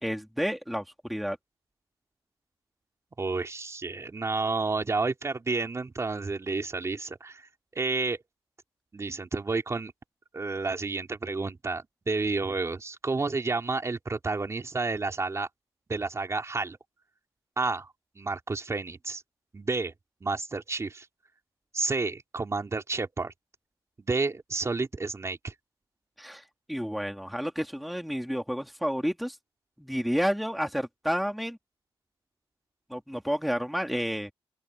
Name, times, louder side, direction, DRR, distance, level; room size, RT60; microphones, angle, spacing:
voice 1, 0.0-1.4 26.2-29.4 29.8-31.6 32.9-34.3, equal, ahead, 2.5 m, -30 dB
voice 2, 3.2-8.2 8.9-9.9 10.3-15.5 15.9-16.8 17.6-17.9 18.1-19.2 19.5-19.9 20.2-21.0 21.7-23.3 24.0-25.5, right 3 dB, 30° right, 3.4 m, -30 dB
open air
cardioid pair, 90°, 10 cm